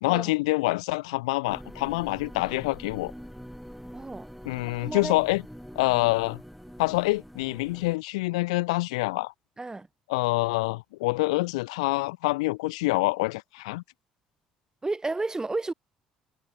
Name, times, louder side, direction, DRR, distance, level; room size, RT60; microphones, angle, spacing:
voice 1, 0.0-3.1 4.4-5.4 5.8-6.4 6.8-9.3 10.1-13.8, left 22 dB, 80° left, 0.8 m, -26 dB
sound 1, 1.5-8.0, equal, ahead, 8.0 m, -44 dB
voice 2, 3.9-4.3 4.8-5.2 9.6-9.9 14.8-15.7, right 3 dB, 20° right, 3.5 m, -31 dB
hypercardioid pair, 55°, 3 cm